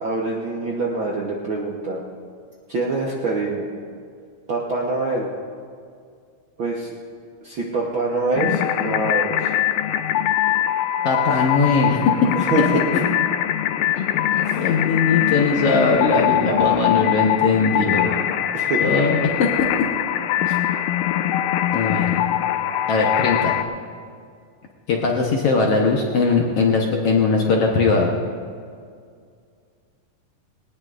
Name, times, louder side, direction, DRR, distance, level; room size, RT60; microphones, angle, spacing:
voice 1, 0.0-2.0 2.7-3.7 4.5-5.3 6.6-6.9 7.4-9.5 11.3-11.5 12.4-12.8 14.4-14.7 18.5-18.8, right 3 dB, 60° right, -3 dB, 1.3 m, -25 dB
sound 1, 8.4-23.6, left 11 dB, 75° left, 1.8 m, -22 dB
voice 2, 11.0-12.0 14.0-14.1 14.4-18.2 18.8-19.7 20.5-20.6 21.7-22.2 22.9-23.5 24.9-28.1, left 4 dB, 60° left, -1 dB, 1.7 m, -20 dB
19.5 x 18.5 x 2.5 m, 2.2 s
omnidirectional pair, 3.8 m